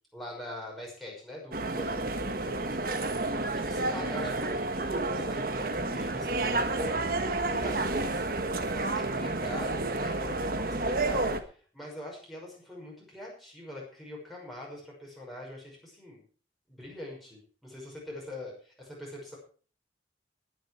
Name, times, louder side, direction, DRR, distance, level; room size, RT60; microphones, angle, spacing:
voice 1, 0.1-16.2 16.7-19.4, left 1 dB, ahead, -4 dB, 5.7 m, -43 dB
sound 1, 1.5-11.4, right 2 dB, 50° right, 1.4 m, -30 dB
20.0 x 7.4 x 4.8 m, 0.40 s
head